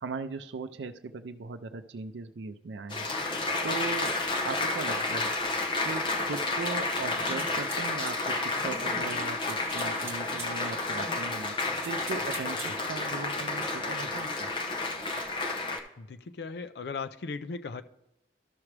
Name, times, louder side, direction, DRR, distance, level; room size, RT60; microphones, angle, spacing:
voice 1, 0.0-3.1 3.6-4.2 4.4-5.3 5.8-11.6 11.8-14.5, right 4 dB, 90° right, 8 dB, 0.4 m, -38 dB
Applause, 2.9-15.8, left 3 dB, 30° left, 0.8 m, -31 dB
Wind instrument woodwind instrument, 6.9-11.5, right 5 dB, 30° right, 1.0 m, -52 dB
sound 1, 7.3-8.2 9.4-10.5 11.5-12.8, right 4 dB, 15° right, 1.3 m, -44 dB
voice 2, 16.0-17.8, left 4 dB, 70° left, 10 dB, 0.4 m, -37 dB
13.0 x 5.9 x 3.2 m, 0.91 s
head